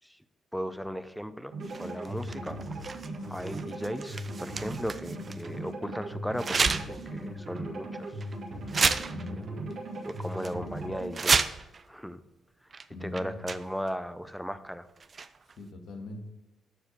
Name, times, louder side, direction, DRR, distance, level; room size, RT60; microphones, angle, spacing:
voice 1, 0.5-2.6 3.2-8.1 10.0-11.5 11.9-12.2 13.0-14.9, equal, ahead, 12 dB, 0.9 m, -36 dB
sound 1, 1.5-11.1, right 1 dB, 60° right, 2.4 m, -38 dB
sound 2, 1.6-5.5 6.4-7.1 7.5-7.6 8.2-8.3 8.7-9.7 10.1-10.5 11.0-11.8 12.7-12.8 13.1-13.9 15.0-15.5, right 4 dB, 45° right, 0.7 m, -31 dB
voice 2, 2.2-2.6 3.2-3.5 9.0-9.7 12.9-13.5 15.6-16.2, left 1 dB, 65° left, 3 dB, 2.0 m, -42 dB
12.5 x 4.9 x 6.9 m, 1.0 s
hypercardioid pair, 45°, 0 cm